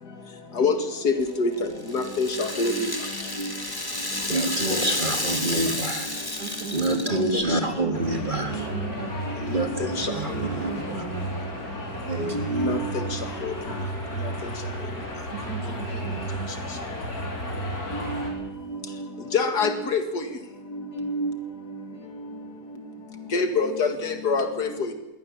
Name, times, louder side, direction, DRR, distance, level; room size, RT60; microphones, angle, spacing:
voice 1, 1.0-2.7 3.4-3.5 5.4-5.5 7.3-7.6 9.4-10.0 12.3-12.8 13.4-13.5 17.9-18.4 18.7-18.8 19.3-20.2 20.7-21.4 23.3-24.7, left 3 dB, 85° left, 7 dB, 2.6 m, -26 dB
Rattle (instrument), 1.2-7.4, left 1 dB, 15° left, 2.0 m, -31 dB
voice 2, 4.3-6.1 6.7-8.5 9.5-11.0 12.1-12.5, right 2 dB, 30° right, 6 dB, 2.0 m, -27 dB
voice 3, 6.4-9.1 10.1-11.5 15.3-16.6, right 7 dB, 75° right, 7 dB, 2.2 m, -38 dB
sound 1, 7.9-18.3, right 1 dB, 65° left, 4.4 m, -33 dB
22.0 x 17.5 x 7.4 m, 0.96 s
omnidirectional pair, 1.7 m